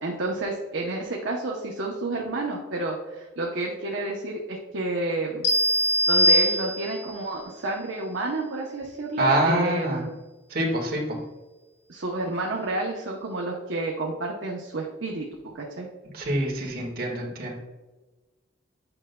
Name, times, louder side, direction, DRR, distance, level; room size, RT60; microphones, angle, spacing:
voice 1, 0.0-5.5 6.1-10.1 11.9-15.3 15.5-15.9, right 2 dB, 80° right, -1 dB, 0.8 m, -30 dB
sound 1, 5.4-7.2, equal, 75° left, 1.0 m, -21 dB
voice 2, 9.2-10.0 10.5-11.2 16.1-17.5, right 1 dB, 55° right, -2 dB, 1.7 m, -25 dB
8.8 x 5.3 x 2.2 m, 1.2 s
head